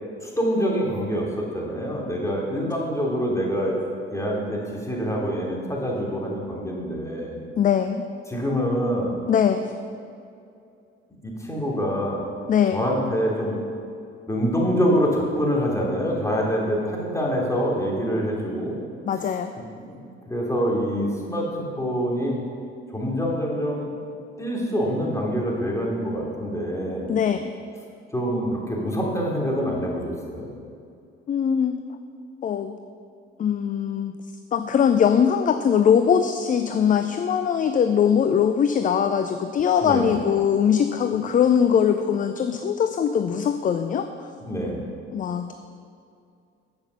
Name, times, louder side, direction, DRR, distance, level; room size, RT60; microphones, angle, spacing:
voice 1, 0.2-3.8 4.1-7.4 8.3-9.1 11.2-12.2 12.7-13.6 14.3-18.8 19.8-21.5 21.8-22.4 22.9-23.9 24.4-27.1 28.1-30.5 39.8-40.1 44.4-44.8, equal, 10° left, -3 dB, 3.1 m, -25 dB
voice 2, 7.6-8.0 9.3-9.7 12.5-12.8 19.1-19.5 27.1-27.5 31.3-31.8 32.4-32.8 33.4-34.1 34.5-44.1 45.1-45.5, left 8 dB, 25° left, 9 dB, 0.5 m, -21 dB
10.5 x 8.0 x 5.8 m, 2.4 s
figure-of-eight pair, 50°, 33 cm